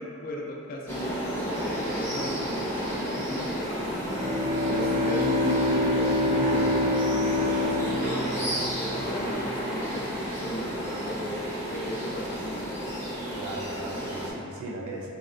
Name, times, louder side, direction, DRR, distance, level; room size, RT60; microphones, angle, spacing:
voice 1, 0.0-4.2 4.7-12.7, left 1 dB, 40° left, -1 dB, 0.3 m, -36 dB
sound 1, 0.9-14.3, equal, 10° left, 0.7 m, -32 dB
Bowed string instrument, 4.0-9.2, left 1 dB, 25° right, 0.7 m, -26 dB
voice 2, 6.4-6.8 13.3-15.1, right 2 dB, 65° right, -2 dB, 0.4 m, -37 dB
4.0 x 2.1 x 2.4 m, 2.6 s
head